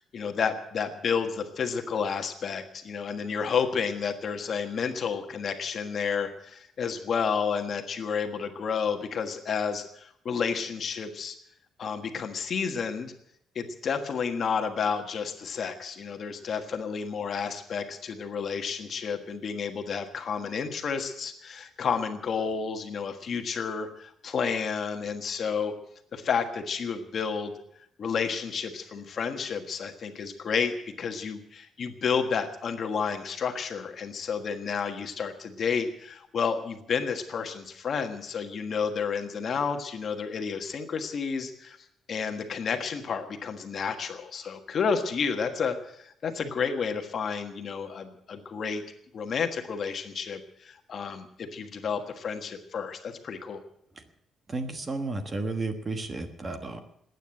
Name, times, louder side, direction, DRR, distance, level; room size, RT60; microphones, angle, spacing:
voice 1, 0.1-11.4 11.8-13.1 13.5-25.7 26.1-27.6 28.0-41.8 42.1-48.8 49.1-53.6, left 6 dB, 40° left, 6 dB, 1.5 m, -31 dB
voice 2, 54.5-56.8, right 3 dB, 20° right, 7 dB, 1.2 m, -32 dB
19.5 x 9.4 x 7.7 m, 0.72 s
cardioid pair, 170°, 0 cm